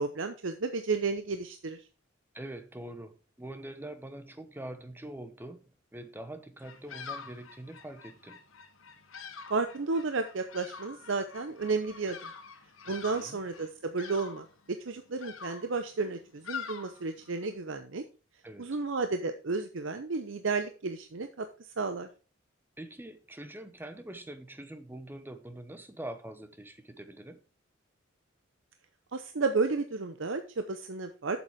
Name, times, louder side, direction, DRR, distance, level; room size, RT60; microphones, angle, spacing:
voice 1, 0.0-1.8 9.5-12.3 12.9-18.0 18.6-21.5 21.8-22.1 29.1-31.4, right 4 dB, 65° right, 0.7 m, -32 dB
voice 2, 2.3-5.6 5.9-8.4 12.8-13.4 18.4-18.8 22.8-27.4, right 1 dB, 10° right, 0.9 m, -44 dB
Bird vocalization bird call bird song, 6.6-17.5, left 6 dB, 85° left, 1.4 m, -46 dB
7.7 x 7.2 x 4.6 m
head